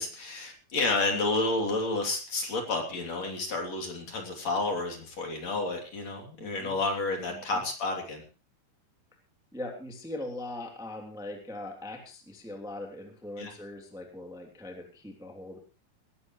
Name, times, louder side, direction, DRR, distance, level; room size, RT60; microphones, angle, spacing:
voice 1, 0.0-8.2 13.4-13.5, left 2 dB, 45° left, 2 dB, 4.2 m, -30 dB
voice 2, 6.4-6.8 7.3-7.6 9.5-15.6, left 1 dB, ahead, 2 dB, 2.2 m, -41 dB
19.5 x 15.5 x 3.1 m, 0.34 s
omnidirectional pair, 4.3 m